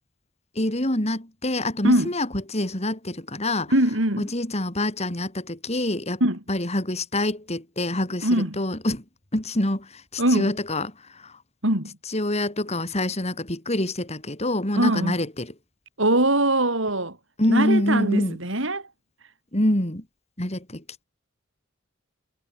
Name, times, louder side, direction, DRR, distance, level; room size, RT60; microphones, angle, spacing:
voice 1, 0.6-3.7 4.2-6.2 6.5-9.0 9.3-10.9 11.2-11.3 12.1-15.5 17.4-18.4 19.5-20.0 20.4-20.8, left 1 dB, 30° left, 3.5 m, -26 dB
voice 2, 3.7-4.3 6.2-6.4 8.2-8.5 10.2-10.5 11.6-11.9 14.7-15.1 16.0-17.2 17.5-18.9, right 1 dB, 60° right, 6.6 m, -22 dB
head